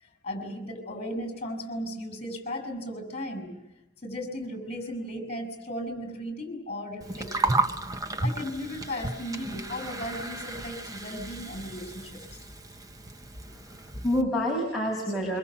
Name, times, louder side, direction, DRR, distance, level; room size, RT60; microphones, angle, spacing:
voice 1, 0.2-3.5 4.0-7.6 8.2-12.5, left 1 dB, 30° left, 7 dB, 7.4 m, -36 dB
Gurgling, 7.0-14.2, right 2 dB, 15° right, 0.9 m, -33 dB
voice 2, 13.5-15.4, equal, ahead, -2 dB, 5.8 m, -28 dB
26.5 x 25.0 x 7.5 m, 0.94 s
head